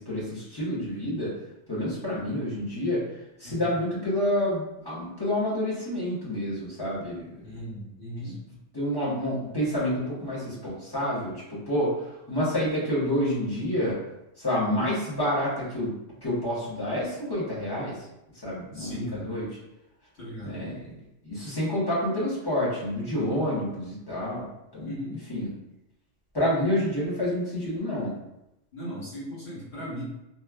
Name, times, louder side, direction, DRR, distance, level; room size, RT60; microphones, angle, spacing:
voice 1, 0.0-1.3 1.7-3.0 3.4-7.5 8.7-14.0 14.4-15.9 16.2-18.0 18.4-19.5 20.4-20.8 21.2-24.5 24.7-25.5 26.3-28.1, left 1 dB, 20° left, -9 dB, 1.0 m, -28 dB
voice 2, 7.4-8.4 18.7-19.2 20.2-20.6 24.8-25.2 28.7-30.0, equal, 55° left, -11 dB, 1.8 m, -37 dB
3.0 x 2.4 x 2.3 m, 0.87 s
omnidirectional pair, 1.3 m